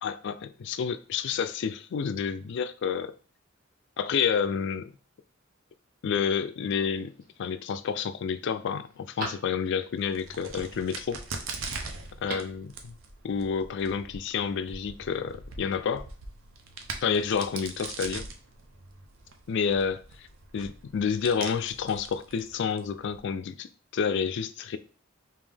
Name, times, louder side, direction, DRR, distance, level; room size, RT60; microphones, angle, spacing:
voice 1, 0.0-3.1 4.0-4.9 6.0-7.1 7.4-11.2 12.2-12.9 13.2-16.1 17.0-18.2 19.5-20.3 20.5-24.8, left 6 dB, 60° left, 0.3 m, -29 dB
Telephone, 6.9-7.5 8.0-8.1 8.5-10.0 12.0-12.7 12.9-13.0, right 1 dB, 45° right, 1.3 m, -41 dB
Crack, 9.9-23.2, right 4 dB, 75° right, 0.6 m, -42 dB
3.6 x 2.8 x 3.4 m
head